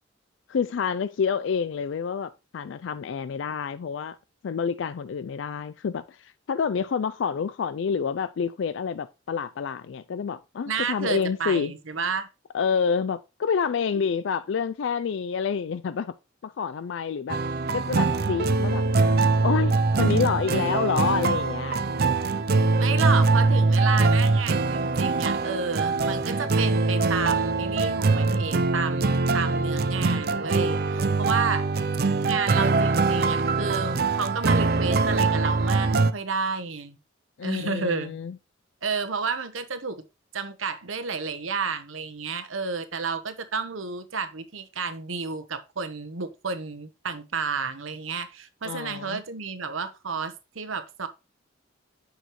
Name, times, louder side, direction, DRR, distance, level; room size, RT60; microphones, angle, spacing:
voice 1, 0.5-4.2 4.4-11.7 12.5-16.1 16.4-17.4 17.7-18.8 19.4-21.8 37.4-38.4 48.6-49.2, left 6 dB, 65° left, 0.4 m, -28 dB
voice 2, 10.7-12.3 22.8-31.7 32.2-37.0 37.4-38.2 38.8-40.0 40.3-51.1, right 5 dB, 85° right, 1.1 m, -31 dB
sound 1, 17.3-36.1, right 3 dB, 50° right, 0.5 m, -23 dB
9.2 x 6.3 x 3.1 m
head